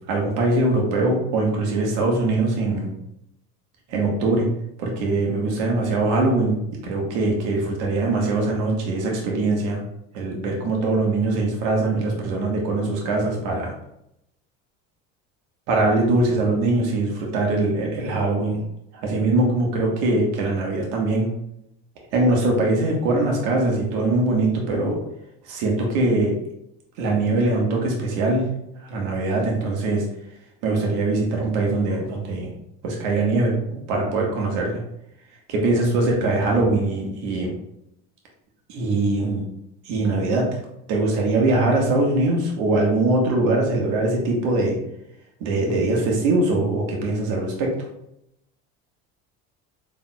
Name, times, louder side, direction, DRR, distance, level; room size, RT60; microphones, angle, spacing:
voice 1, 0.1-2.9 3.9-4.5 4.8-6.6 6.8-9.8 10.1-13.7 15.7-18.6 19.0-21.3 22.1-25.0 25.5-26.3 27.0-28.5 28.8-30.0 30.6-32.5 32.8-34.8 35.5-37.5 38.7-39.4 39.8-40.5 40.9-44.8 45.4-47.7, right 2 dB, 75° right, 0 dB, 1.3 m, -22 dB
4.3 x 3.4 x 2.2 m, 0.79 s
supercardioid pair, 95°, 33 cm